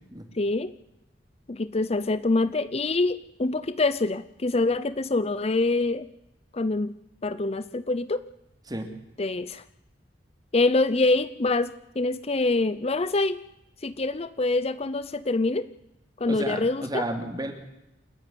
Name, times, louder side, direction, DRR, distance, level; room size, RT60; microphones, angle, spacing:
voice 1, 0.3-0.7 1.5-6.1 6.5-6.9 7.2-8.2 9.2-9.6 10.5-13.4 13.8-15.7 16.2-17.0, left 2 dB, 35° left, 14 dB, 0.7 m, -25 dB
voice 2, 16.3-17.5, right 1 dB, 20° right, 5 dB, 3.1 m, -32 dB
28.5 x 10.5 x 9.5 m, 0.87 s
head